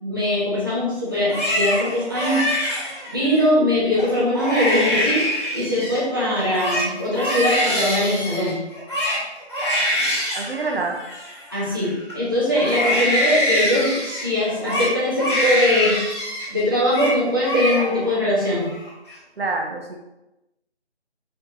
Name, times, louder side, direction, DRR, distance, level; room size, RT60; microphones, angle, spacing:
voice 1, 0.0-2.4 3.1-5.3 5.5-8.6 11.5-16.0 16.5-18.7, left 1 dB, 20° right, -8 dB, 0.9 m, -21 dB
Crying sobbing, 1.2-3.4 3.9-4.1 4.3-6.1 6.4-12.1 12.5-16.5 16.8-17.2 17.4-18.1 18.5-19.1, equal, 25° left, 1.4 m, -24 dB
voice 2, 10.4-11.0 19.4-20.0, right 3 dB, 60° right, 1 dB, 0.8 m, -26 dB
4.5 x 2.8 x 3.7 m, 0.95 s
figure-of-eight pair, 170°, 34 cm